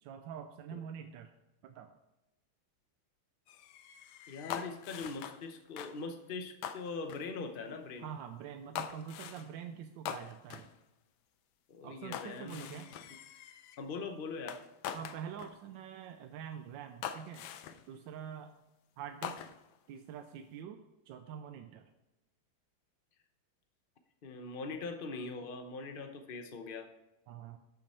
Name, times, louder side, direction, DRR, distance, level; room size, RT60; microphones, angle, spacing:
voice 1, 0.0-1.3 1.6-1.9 8.0-10.7 11.8-12.9 14.9-17.5 17.9-18.6 19.0-19.4 19.9-21.9 27.3-27.6, right 8 dB, 75° right, 7 dB, 1.2 m, -45 dB
sound 1, 3.5-5.5 5.8-6.0 6.6-7.3 8.7-9.5 10.0-10.7 12.1-13.8 14.5-15.6 16.3-16.4 17.0-17.9 19.2-19.8, left 9 dB, 70° left, 1.0 m, -43 dB
voice 2, 4.3-8.1 11.7-12.8 13.8-14.6 24.2-26.9, left 4 dB, 90° left, 6 dB, 0.4 m, -42 dB
12.0 x 6.6 x 4.3 m, 0.99 s
omnidirectional pair, 2.3 m